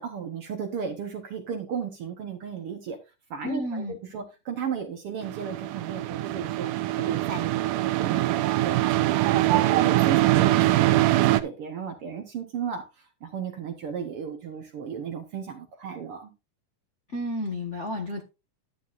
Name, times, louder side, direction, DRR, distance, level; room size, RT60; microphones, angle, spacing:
voice 1, 0.0-3.0 3.3-3.8 4.1-6.7 7.0-8.8 9.2-12.8 13.2-16.3, right 7 dB, 60° right, 1.7 m, -34 dB
voice 2, 3.4-4.0 17.1-18.2, left 1 dB, 50° left, 0.8 m, -31 dB
sound 1, 5.2-11.4, right 16 dB, 85° right, 2.3 m, -23 dB
11.5 x 9.2 x 2.6 m
omnidirectional pair, 3.7 m